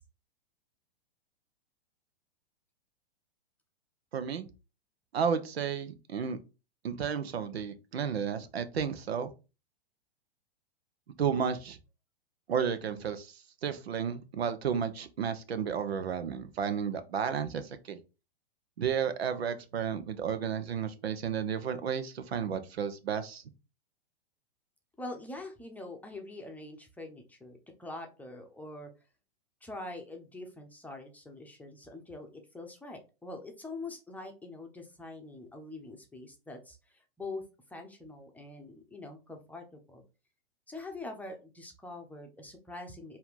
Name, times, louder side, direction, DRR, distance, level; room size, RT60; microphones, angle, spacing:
voice 1, 4.1-4.5 5.1-6.4 6.8-9.3 11.2-11.8 12.5-18.0 18.8-23.4, right 7 dB, 80° right, 11 dB, 0.9 m, -32 dB
voice 2, 25.0-28.9 29.6-32.3 32.5-37.4 37.7-40.0 40.7-43.2, left 2 dB, 5° left, 3 dB, 0.9 m, -44 dB
4.4 x 2.8 x 3.7 m, 0.30 s
hypercardioid pair, 115°, 31 cm